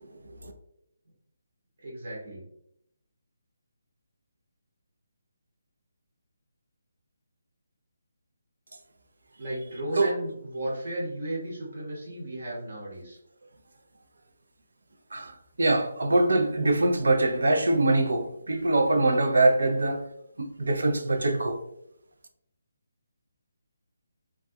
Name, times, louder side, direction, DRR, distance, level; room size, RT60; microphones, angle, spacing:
voice 1, 1.8-2.4 9.4-13.2, right 1 dB, 45° right, 0.8 m, -34 dB
voice 2, 15.1-20.0 20.4-21.6, right 2 dB, 80° right, 0.4 m, -23 dB
2.2 x 2.2 x 2.6 m
hypercardioid pair, 175°, 0 cm